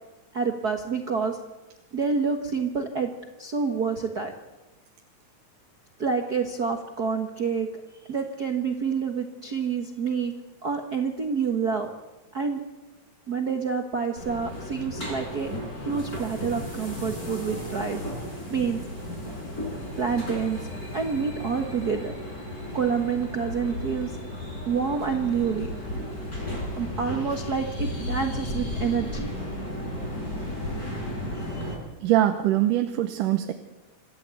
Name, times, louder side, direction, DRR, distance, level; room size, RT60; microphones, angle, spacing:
voice 1, 0.3-1.4 1.9-3.1 3.4-4.3 6.0-7.7 8.1-10.3 10.6-11.9 12.3-12.6 13.3-15.5 15.8-18.0 18.5-18.8 20.0-20.6 20.9-22.1 22.7-24.1 24.7-25.7 26.7-29.3, right 5 dB, 50° right, 4 dB, 1.2 m, -27 dB
sound 1, 14.2-31.7, left 1 dB, 25° left, 6.7 m, -34 dB
voice 2, 32.0-33.5, right 13 dB, 90° right, 7 dB, 2.6 m, -22 dB
27.0 x 14.0 x 8.4 m, 1.1 s
omnidirectional pair, 3.7 m